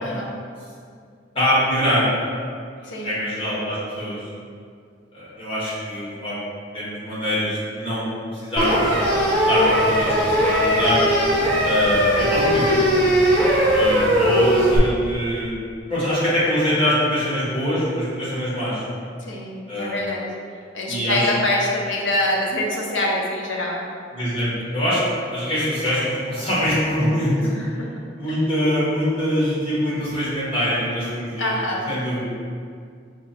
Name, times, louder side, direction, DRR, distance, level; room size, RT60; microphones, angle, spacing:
voice 1, 0.0-0.3 2.8-3.2 11.3-11.7 19.3-20.3 20.7-23.9 27.4-27.8 28.3-28.4 31.4-31.9, left 1 dB, 80° left, -2 dB, 0.8 m, -25 dB
voice 2, 1.3-2.0 2.8-4.3 5.1-6.4 6.7-8.8 9.1-9.2 9.5-11.0 11.6-13.0 13.7-15.6 15.9-18.8 19.7-20.0 20.9-21.3 24.1-25.0 25.3-27.4 28.1-31.5 31.9-32.3, equal, 30° left, -11 dB, 1.5 m, -23 dB
sound 1, 8.6-14.8, equal, 5° left, 0.8 m, -19 dB
4.8 x 2.2 x 4.1 m, 2.2 s
head